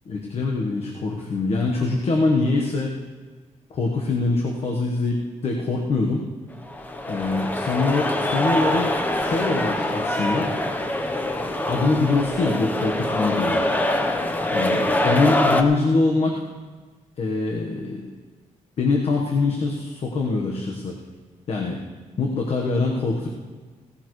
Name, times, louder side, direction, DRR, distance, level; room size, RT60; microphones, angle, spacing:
voice 1, 0.1-2.9 3.7-6.2 7.0-10.5 11.7-13.6 14.5-16.4 17.2-18.1 18.8-21.0 21.5-21.8 22.2-23.3, left 3 dB, 50° left, 0 dB, 1.3 m, -23 dB
sound 1, 6.6-15.6, left 1 dB, 15° left, 0.9 m, -24 dB
17.5 x 15.0 x 3.2 m, 1.4 s
wide cardioid pair, 170°, 13 cm